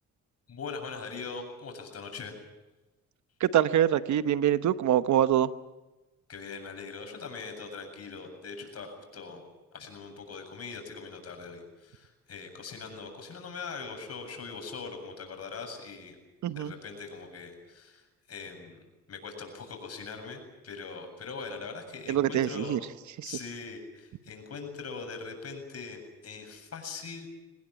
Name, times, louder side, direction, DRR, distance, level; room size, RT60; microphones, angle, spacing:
voice 1, 0.5-2.4 6.3-9.4 9.7-16.2 16.6-22.8 23.2-27.3, left 4 dB, 55° left, 5 dB, 7.8 m, -41 dB
voice 2, 3.4-5.5 16.4-16.7 22.1-22.8, right 11 dB, 70° right, 12 dB, 1.1 m, -24 dB
25.5 x 19.0 x 8.6 m, 1.1 s
cardioid pair, 90°, 30 cm